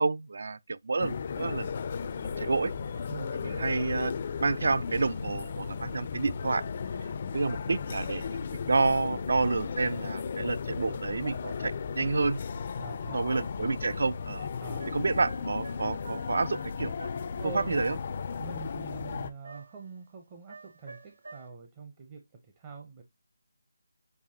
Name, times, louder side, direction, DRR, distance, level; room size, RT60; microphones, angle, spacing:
voice 1, 0.0-1.7 2.2-2.7 3.4-4.1 4.4-6.6 7.3-8.4 8.6-12.4 13.1-14.5 14.9-16.9 17.5-18.0, right 3 dB, 60° right, 0.4 m, -29 dB
sound 1, 1.0-19.3, left 6 dB, 35° left, 0.4 m, -36 dB
sound 2, 1.4-18.8, left 2 dB, 90° left, 0.6 m, -45 dB
voice 2, 12.8-13.3 14.6-15.0 17.4-18.0 18.4-23.0, right 5 dB, 20° right, 0.6 m, -44 dB
sound 3, 14.6-17.3 19.4-19.9 20.5-21.5, right 3 dB, 75° right, 1.6 m, -48 dB
6.6 x 2.8 x 2.7 m
figure-of-eight pair, 170°, 0 cm